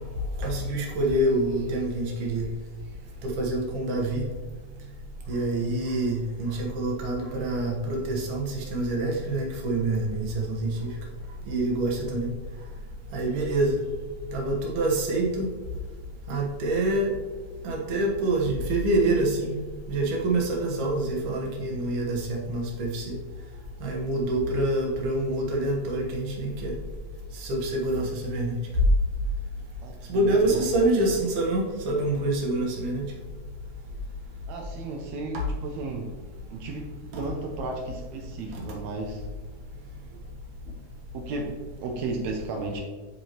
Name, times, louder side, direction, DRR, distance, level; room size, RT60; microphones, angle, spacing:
voice 1, 0.4-2.5 3.2-4.2 5.3-10.9 11.5-12.3 13.1-13.8 14.3-15.5 16.3-17.1 17.6-19.5 19.9-23.2 23.8-26.7 27.3-28.5 30.1-33.1 35.3-35.4, right 2 dB, 60° right, -1 dB, 1.7 m, -26 dB
voice 2, 29.8-30.6 34.5-36.1 36.5-39.2 40.6-40.8 41.1-41.5 41.8-42.8, right 3 dB, 90° right, 1 dB, 1.6 m, -34 dB
9.5 x 4.8 x 3.0 m, 1.4 s
omnidirectional pair, 4.2 m